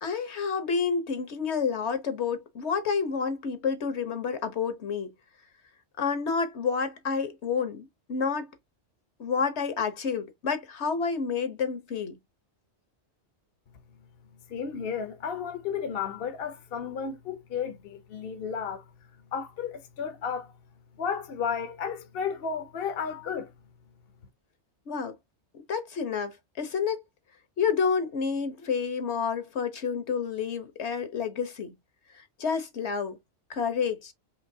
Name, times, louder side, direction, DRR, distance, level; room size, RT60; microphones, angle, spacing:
voice 1, 0.0-5.1 6.0-8.5 9.2-12.2 24.9-25.1 25.7-27.0 27.6-31.7 32.1-33.2 33.5-34.1, left 6 dB, 75° left, 1.4 m, -29 dB
voice 2, 14.5-18.9 19.3-20.5 21.0-23.5, left 7 dB, 60° left, 0.9 m, -33 dB
5.1 x 3.0 x 2.7 m
omnidirectional pair, 1.2 m